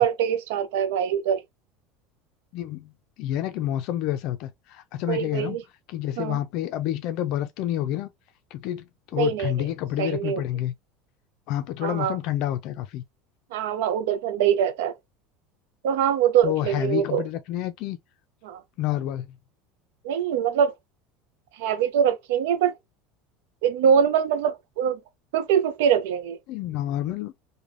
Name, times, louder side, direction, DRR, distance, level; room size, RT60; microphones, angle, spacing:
voice 1, 0.0-1.4 5.1-5.6 6.2-6.4 9.1-9.5 10.0-10.4 11.8-12.2 13.5-14.9 15.8-17.2 18.4-18.6 20.0-20.7 21.6-22.8 23.6-25.0 25.3-26.4, right 8 dB, 85° right, 0.4 m, -23 dB
voice 2, 2.5-2.9 3.2-5.6 5.9-8.1 8.5-8.8 9.1-10.7 11.5-13.0 16.4-18.0 18.8-19.4 26.5-27.3, left 12 dB, 55° left, 0.4 m, -28 dB
3.2 x 2.1 x 2.4 m
cardioid pair, 155°, 0 cm